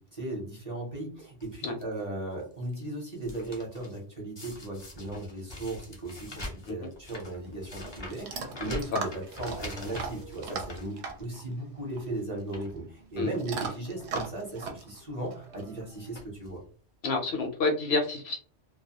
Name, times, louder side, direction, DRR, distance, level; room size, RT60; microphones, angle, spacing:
voice 1, 0.0-16.6, right 2 dB, 40° right, -2 dB, 0.8 m, -37 dB
sound 1, 1.4-1.8 2.4-4.0 4.4-11.5 11.8-12.0 12.4-12.8 13.6-13.7 14.0-14.3 14.6-14.7 15.6-15.8 16.1-16.6 17.4-17.5 17.7-17.8, left 1 dB, 30° left, 0.5 m, -44 dB
Chewing mastication / Dog, 7.1-16.2, right 5 dB, 70° right, 0.8 m, -40 dB
voice 2, 17.0-18.4, left 3 dB, 65° left, 3 dB, 0.8 m, -28 dB
2.2 x 2.1 x 2.8 m, 0.40 s
omnidirectional pair, 1.2 m